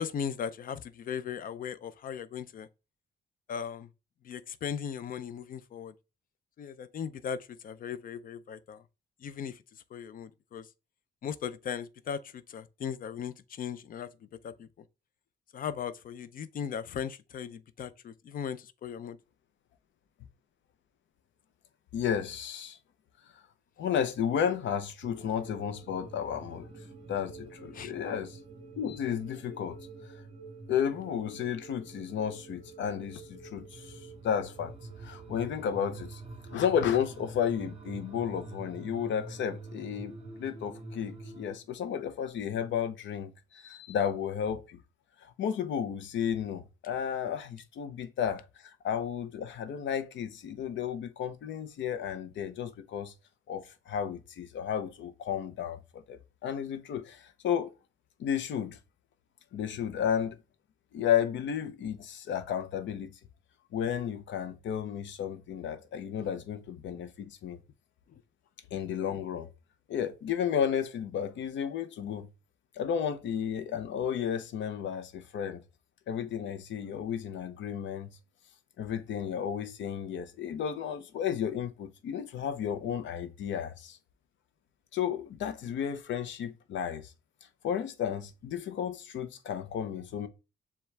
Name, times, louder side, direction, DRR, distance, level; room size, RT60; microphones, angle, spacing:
voice 1, 0.0-2.7 3.5-3.9 4.2-5.9 6.6-8.8 9.2-9.6 9.9-10.7 11.2-14.1 14.4-14.7 15.5-19.2 27.7-27.9 66.2-66.3, left 7 dB, 50° left, 0.4 m, -38 dB
voice 2, 21.9-22.8 23.8-26.7 27.1-28.4 28.8-29.8 30.7-34.7 35.0-36.2 36.5-44.8 45.2-53.1 53.5-57.7 58.2-58.8 59.5-60.4 60.9-63.1 63.7-67.6 68.7-69.5 69.9-72.3 72.8-75.6 76.1-78.1 78.8-84.0 84.9-87.1 87.6-90.3, left 8 dB, 80° left, 0.7 m, -33 dB
sound 1, 25.0-41.6, right 3 dB, 30° right, 0.7 m, -46 dB
7.0 x 2.4 x 3.2 m
cardioid pair, 145°, 19 cm